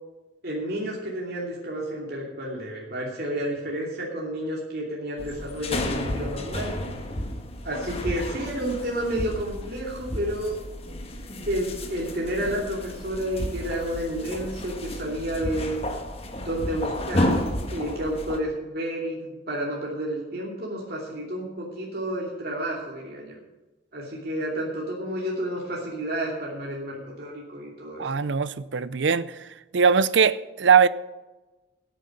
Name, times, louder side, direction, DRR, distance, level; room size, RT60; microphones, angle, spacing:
voice 1, 0.4-6.8 7.6-10.6 11.5-15.8 16.4-17.4 17.7-23.3 23.9-28.1, right 1 dB, 55° right, 2.8 m, -30 dB
sound 1, 5.2-18.4, left 1 dB, 30° left, 1.4 m, -32 dB
voice 2, 28.0-30.9, right 6 dB, 75° right, 0.6 m, -21 dB
12.5 x 9.3 x 6.6 m
head